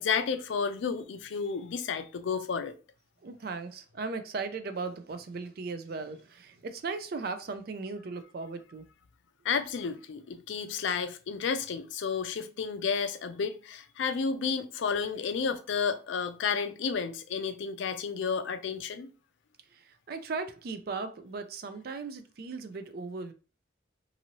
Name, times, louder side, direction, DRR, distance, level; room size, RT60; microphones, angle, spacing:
voice 1, 0.0-2.7 9.4-19.1, left 6 dB, 80° left, 0.4 m, -31 dB
voice 2, 3.2-8.9 19.7-23.3, right 4 dB, 50° right, 0.4 m, -37 dB
2.7 x 2.6 x 2.9 m
head